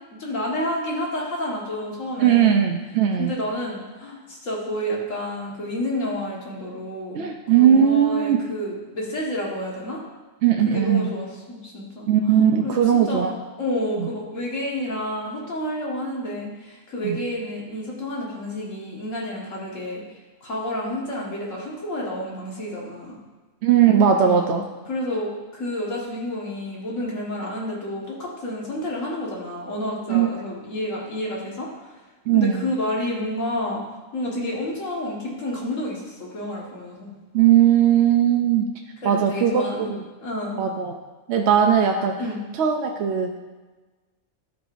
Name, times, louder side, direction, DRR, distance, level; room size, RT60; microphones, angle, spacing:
voice 1, 0.1-2.6 3.2-7.2 7.5-10.0 10.6-12.1 12.6-20.0 20.4-23.2 24.0-31.7 32.3-37.1 39.0-39.9 40.2-40.6 42.2-42.4, left 1 dB, 75° left, -3 dB, 1.9 m, -30 dB
voice 2, 2.2-3.3 7.1-8.4 10.4-11.1 12.1-13.3 14.0-14.1 17.0-17.2 23.6-24.6 30.1-30.3 32.3-32.7 37.3-38.6 39.0-40.0 40.6-40.9 41.3-42.2 42.6-43.3, right 9 dB, 65° right, 3 dB, 0.8 m, -19 dB
12.0 x 4.7 x 2.5 m, 1.3 s
omnidirectional pair, 1.3 m